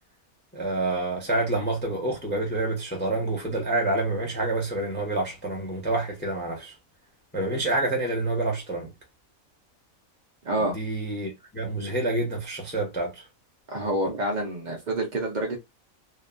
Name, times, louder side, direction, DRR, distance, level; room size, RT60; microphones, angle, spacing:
voice 1, 0.5-6.7 7.3-8.9 10.6-13.2, right 2 dB, 10° left, 0.5 m, -28 dB
voice 2, 10.4-10.8 13.7-15.6, right 1 dB, 60° right, 0.4 m, -27 dB
2.9 x 2.1 x 2.3 m
omnidirectional pair, 1.5 m